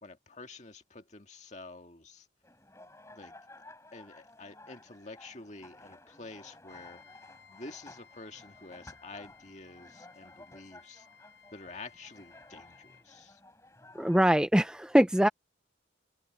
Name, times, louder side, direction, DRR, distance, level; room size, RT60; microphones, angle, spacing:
voice 1, 0.0-2.3 3.1-3.3 3.9-7.0 7.5-11.1 11.5-13.4, left 3 dB, 35° left, 1.9 m, -48 dB
sound 1, 2.4-14.2, left 2 dB, 15° left, 7.2 m, -54 dB
Trumpet, 6.7-13.1, left 6 dB, 65° left, 5.3 m, -59 dB
voice 2, 14.0-15.3, equal, 5° right, 0.4 m, -23 dB
head